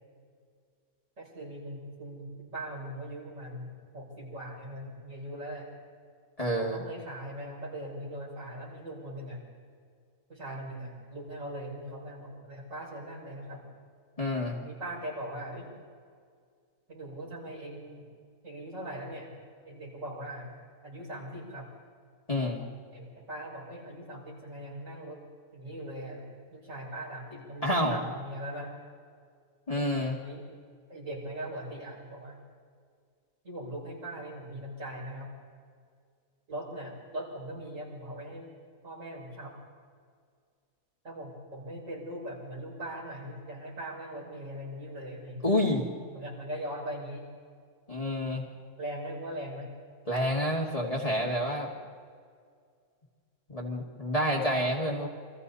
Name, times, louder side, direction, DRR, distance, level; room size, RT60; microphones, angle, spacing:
voice 1, 1.2-5.7 6.4-9.4 10.3-13.6 14.6-15.7 16.9-18.0 18.4-19.3 19.7-20.5 20.8-21.7 22.9-25.2 25.5-28.7 30.2-30.4 30.9-32.4 33.4-35.3 36.5-38.5 38.8-39.5 41.0-45.4 46.1-47.2 48.8-49.7, right 1 dB, 55° right, -4 dB, 6.7 m, -40 dB
voice 2, 6.4-6.8 14.2-14.6 22.3-22.6 27.6-28.0 29.7-30.2 45.4-45.8 47.9-48.4 50.1-51.7 53.5-55.1, equal, 25° left, -2 dB, 2.3 m, -28 dB
29.5 x 24.5 x 4.2 m, 2.1 s
omnidirectional pair, 1.6 m